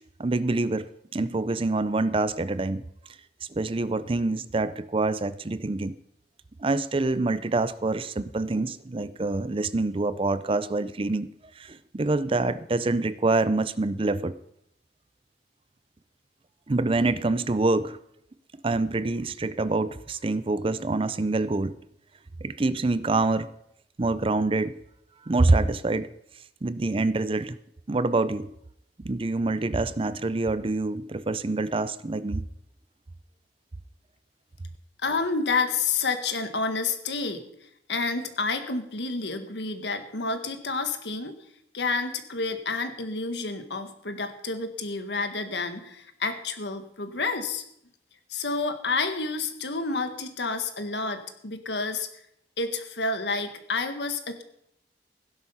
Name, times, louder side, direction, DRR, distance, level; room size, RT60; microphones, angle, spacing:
voice 1, 0.2-2.8 3.5-6.0 6.6-11.3 11.6-14.4 16.7-18.0 18.6-21.7 22.4-23.5 24.0-24.8 25.3-26.1 26.6-27.6 27.9-28.5 29.0-32.5, right 2 dB, 30° right, 15 dB, 0.5 m, -26 dB
voice 2, 35.0-41.3 41.7-47.6 48.3-52.1 52.6-54.4, left 4 dB, 75° left, 7 dB, 1.7 m, -29 dB
16.5 x 11.0 x 5.6 m, 0.77 s
head